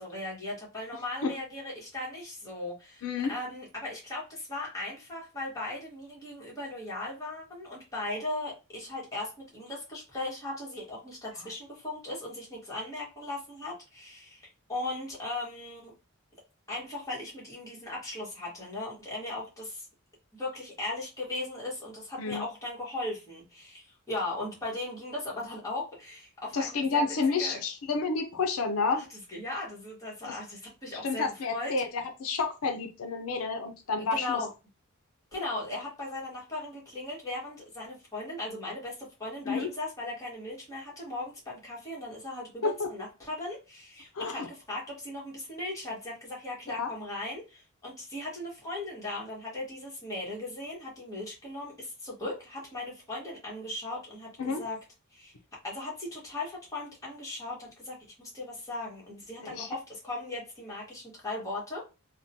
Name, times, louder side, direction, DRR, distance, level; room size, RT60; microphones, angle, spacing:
voice 1, 0.0-14.4 14.7-15.9 16.7-19.9 20.3-27.0 27.4-27.6 28.9-31.7 34.0-34.5 35.3-54.8 55.1-55.3 55.6-61.9, left 2 dB, 15° left, -5 dB, 1.5 m, -38 dB
voice 2, 3.0-3.3 22.2-22.4 26.5-29.0 30.3-30.4 31.0-34.4 39.5-39.7 42.6-42.9 44.1-44.5 46.8-46.9 54.4-54.6 59.4-59.7, left 4 dB, 80° left, 5 dB, 0.5 m, -30 dB
3.5 x 2.2 x 2.6 m, 0.28 s
head